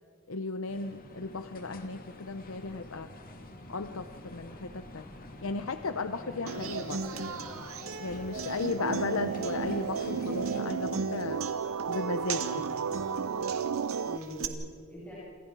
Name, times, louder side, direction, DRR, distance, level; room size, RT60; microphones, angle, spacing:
voice 1, 0.3-3.1 3.7-5.0 5.4-7.0 8.0-11.4 11.9-12.6, left 3 dB, 65° left, 10 dB, 0.8 m, -35 dB
sound 1, 0.7-10.6, left 1 dB, 40° left, 2.4 m, -48 dB
voice 2, 6.2-6.7 8.4-8.9 12.4-12.9 14.0-15.1, equal, 10° left, -10 dB, 7.1 m, -46 dB
Human voice / Acoustic guitar, 6.5-14.4, right 3 dB, 70° right, 2.1 m, -38 dB
sound 2, 8.8-14.2, right 6 dB, 85° right, 0.5 m, -33 dB
29.0 x 28.0 x 4.8 m, 2.4 s
head